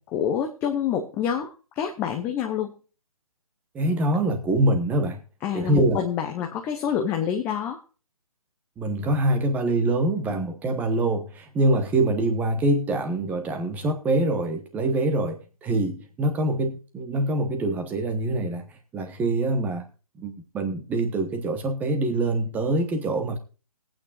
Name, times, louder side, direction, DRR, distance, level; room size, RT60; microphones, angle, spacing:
voice 1, 0.1-2.7 5.4-7.8 10.3-10.4, left 8 dB, 10° left, 3 dB, 0.7 m, -27 dB
voice 2, 3.7-5.2 5.5-6.0 8.8-18.6 18.9-19.8 20.2-23.4, right 2 dB, 10° right, 6 dB, 1.2 m, -24 dB
21.0 x 8.9 x 2.5 m, 0.34 s
figure-of-eight pair, 150°, 19 cm